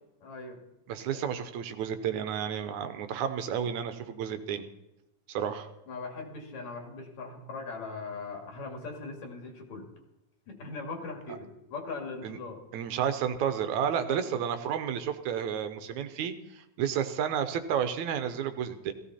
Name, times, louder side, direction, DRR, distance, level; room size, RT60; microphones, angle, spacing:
voice 1, 0.2-0.6 1.1-1.2 5.9-9.9 10.5-12.6 14.1-14.2, left 3 dB, 65° left, 2 dB, 3.6 m, -40 dB
voice 2, 0.9-4.7 5.3-5.7 12.2-12.4 12.7-18.9, right 8 dB, 75° right, 9 dB, 2.2 m, -31 dB
16.5 x 15.5 x 4.3 m, 0.92 s
omnidirectional pair, 3.5 m